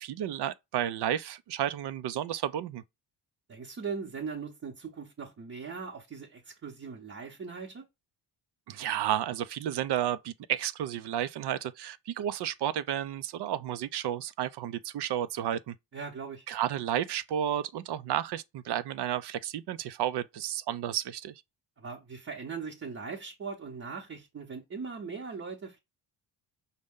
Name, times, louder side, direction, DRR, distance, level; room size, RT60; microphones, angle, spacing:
voice 1, 0.0-2.8 8.7-15.8 16.5-21.3, right 11 dB, 60° right, 0.5 m, -32 dB
voice 2, 3.5-7.8 15.9-16.5 21.8-25.8, right 5 dB, 30° right, 0.8 m, -40 dB
5.2 x 2.2 x 3.5 m
cardioid pair, 125°, 47 cm